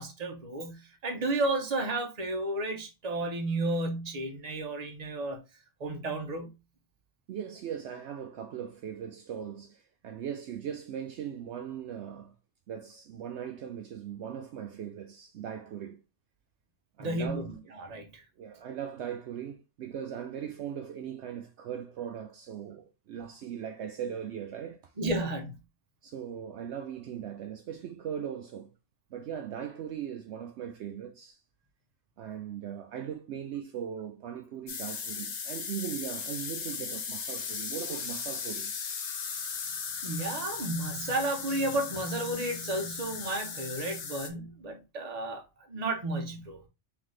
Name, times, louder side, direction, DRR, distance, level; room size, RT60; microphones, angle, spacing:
voice 1, 0.0-5.4 5.8-6.5 17.0-18.2 25.0-25.6 40.0-46.6, right 2 dB, 35° right, 0.9 m, -32 dB
voice 2, 7.3-12.3 12.7-16.0 17.0-17.5 18.4-24.9 26.0-28.7 29.1-31.4 32.2-38.7, right 9 dB, 70° right, 0.8 m, -39 dB
sound 1, 34.7-44.3, left 6 dB, 50° left, 0.5 m, -37 dB
3.8 x 3.5 x 3.2 m
omnidirectional pair, 1.3 m